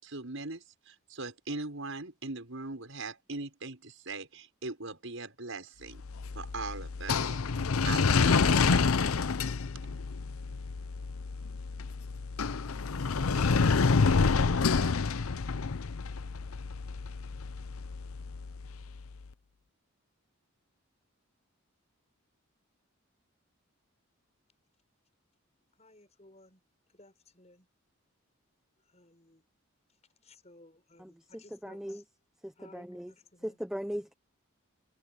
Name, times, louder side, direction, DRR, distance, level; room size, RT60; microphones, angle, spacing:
voice 1, 0.0-6.0 6.3-7.4 7.8-9.3, right 3 dB, 70° right, 6.1 m, -40 dB
sound 1, 6.0-19.1, left 4 dB, 85° left, 0.7 m, -28 dB
voice 2, 25.8-26.6 26.9-27.7 28.9-29.4 30.2-32.0 32.6-33.6, left 2 dB, 30° left, 6.1 m, -58 dB
voice 3, 31.0-32.0 32.4-33.1 33.4-34.1, equal, 5° right, 0.6 m, -39 dB
head